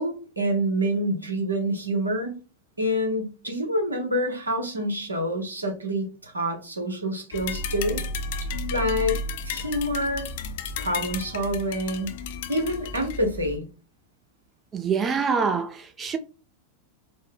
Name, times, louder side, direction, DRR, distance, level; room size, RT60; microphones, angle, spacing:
voice 1, 0.0-2.3 2.8-8.0 8.7-10.3 10.8-12.2 12.5-13.7, equal, 80° right, 1.0 m, -27 dB
sound 1, 7.3-13.6, left 3 dB, 50° left, 0.4 m, -33 dB
voice 2, 14.7-16.2, right 5 dB, 25° right, 0.3 m, -25 dB
4.2 x 2.0 x 3.4 m
figure-of-eight pair, 90°, 0 cm